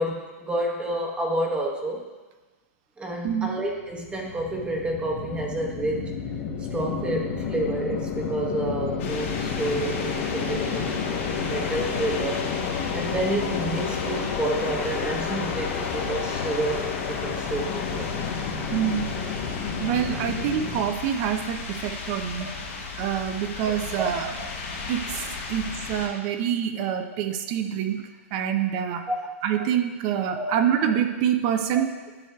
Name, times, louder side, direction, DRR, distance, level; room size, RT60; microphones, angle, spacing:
voice 1, 0.0-2.0 3.0-6.1 6.7-12.5 12.9-18.2 23.9-24.1 24.7-24.9 29.1-29.2 30.3-30.5, right 1 dB, 15° right, 0 dB, 0.9 m, -29 dB
sound 1, 3.7-20.8, left 6 dB, 45° left, 0.9 m, -31 dB
sound 2, 9.0-26.1, left 4 dB, 65° left, 2.2 m, -35 dB
voice 2, 18.7-22.5 23.0-24.3 24.9-29.1 29.4-32.0, right 9 dB, 40° right, 7 dB, 0.6 m, -26 dB
10.5 x 6.4 x 2.3 m, 1.3 s
hypercardioid pair, 125°, 8 cm